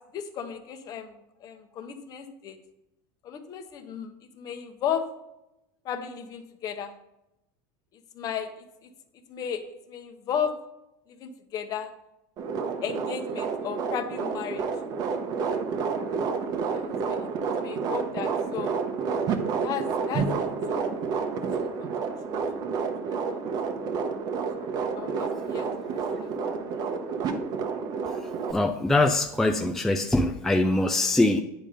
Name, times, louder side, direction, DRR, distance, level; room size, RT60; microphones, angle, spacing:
voice 1, 0.1-1.1 1.4-2.6 3.2-4.1 4.4-5.0 5.8-6.9 8.1-8.5 9.3-9.6 9.9-10.5 11.1-11.9 12.8-14.6 16.7-17.3 17.6-18.8 19.6-20.4 20.7-21.0 21.6-21.9 23.1-23.4 24.6-24.7 24.9-26.8, left 8 dB, 40° left, 8 dB, 0.9 m, -34 dB
sound 1, 12.4-28.5, right 5 dB, 40° right, 0.9 m, -30 dB
voice 2, 28.5-31.4, left 2 dB, 5° left, 4 dB, 0.4 m, -23 dB
9.3 x 5.2 x 5.1 m, 0.89 s
cardioid pair, 150°, 10 cm